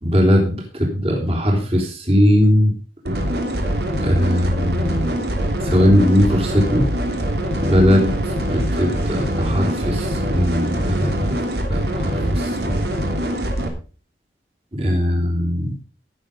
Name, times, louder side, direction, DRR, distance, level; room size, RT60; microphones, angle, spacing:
voice 1, 0.0-0.5 0.8-2.7 4.0-5.2 5.6-6.9 7.6-8.1 8.5-11.1 11.9-12.5 14.8-15.7, equal, 35° right, 0 dB, 3.8 m, -18 dB
sound 1, 3.0-13.7, equal, 65° right, 2.9 m, -23 dB
16.0 x 7.3 x 5.2 m, 0.37 s
head